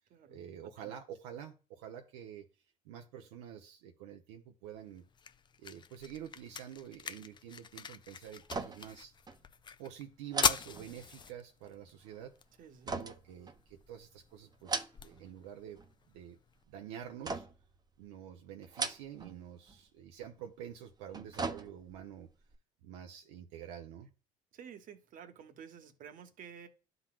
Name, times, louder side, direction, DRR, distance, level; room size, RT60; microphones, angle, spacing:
voice 1, 0.3-2.5 2.8-5.0 5.6-9.1 9.8-12.3 12.8-15.8 16.1-16.4 16.7-17.5 18.0-22.3 22.8-24.1, right 9 dB, 90° right, 0.8 m, -48 dB
sound 1, 4.6-16.6, left 6 dB, 30° left, 0.5 m, -41 dB
sound 2, 8.4-9.0 9.3-9.4 10.3-11.4 12.9-14.0 14.5-15.3 15.6-16.2 17.2-17.8 18.6-19.4 19.7-19.8 20.9-22.1 22.5-22.6, right 4 dB, 25° right, 0.8 m, -39 dB
voice 2, 12.6-12.9 24.5-26.7, right 8 dB, 60° right, 1.1 m, -51 dB
12.0 x 4.0 x 2.3 m
supercardioid pair, 85°, 16 cm